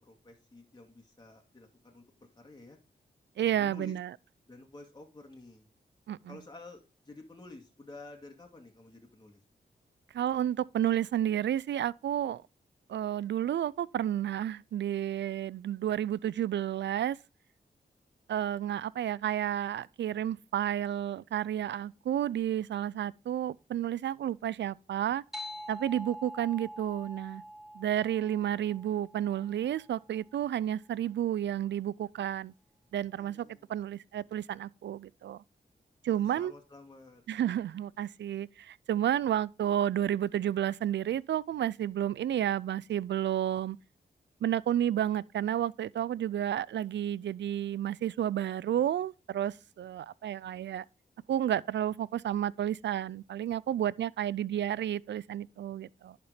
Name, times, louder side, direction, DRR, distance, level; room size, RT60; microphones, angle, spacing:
voice 1, 0.0-2.0 2.4-2.8 3.4-4.0 4.5-5.7 6.3-9.4 33.1-33.7 36.1-37.2 42.0-42.2, left 2 dB, 25° left, 2.2 m, -51 dB
voice 2, 3.4-4.1 6.1-6.4 10.1-12.4 12.9-17.2 18.3-25.2 25.7-27.4 27.8-32.5 32.9-35.4 36.0-36.5 37.3-43.8 44.4-50.8 51.3-56.2, right 11 dB, 80° right, 0.4 m, -31 dB
sound 1, 25.3-30.3, equal, ahead, 2.7 m, -46 dB
11.0 x 4.4 x 5.1 m
cardioid pair, 55°, 18 cm